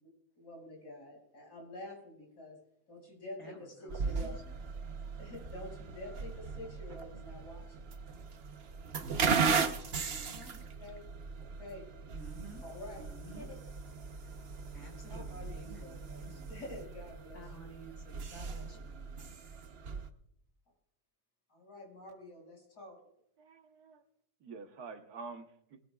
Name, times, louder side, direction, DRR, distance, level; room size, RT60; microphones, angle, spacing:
voice 1, 0.4-2.6 2.9-4.4 5.2-7.9 10.8-11.0 11.4-11.9 12.6-13.1 13.4-13.6 14.2-14.4 15.1-15.5 15.8-17.4 21.5-23.0, left 1 dB, 80° left, -1 dB, 6.4 m, -48 dB
voice 2, 3.4-4.6 4.9-5.0 10.1-10.6 12.1-12.6 13.1-13.5 14.7-16.5 17.3-19.4, right 1 dB, 60° left, 1 dB, 5.5 m, -52 dB
sound 1, 3.9-20.1, right 5 dB, 45° right, 0.9 m, -37 dB
voice 3, 23.4-24.0 24.4-25.8, right 4 dB, 70° right, 6 dB, 1.6 m, -47 dB
21.0 x 19.0 x 2.3 m, 0.75 s
omnidirectional pair, 1.7 m